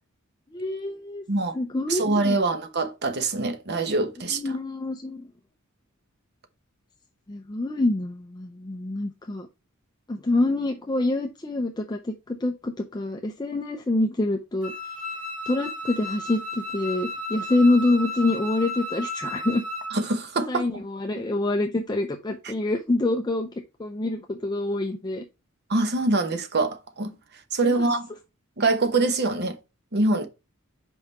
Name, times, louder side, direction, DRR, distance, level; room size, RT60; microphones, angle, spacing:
voice 1, 0.5-1.2 1.6-2.4 4.3-5.3 7.3-9.5 10.1-14.7 15.5-19.6 20.5-23.5 23.8-25.2 27.6-27.7, left 2 dB, 20° left, 0.5 m, -26 dB
voice 2, 1.9-4.6 19.9-20.7 22.4-22.5 25.7-27.2 27.5-28.1 28.6-29.6 29.9-30.3, right 2 dB, 50° right, 1.0 m, -24 dB
Wind instrument woodwind instrument, 14.6-20.0, left 1 dB, 20° right, 3.4 m, -34 dB
5.4 x 4.8 x 4.1 m
head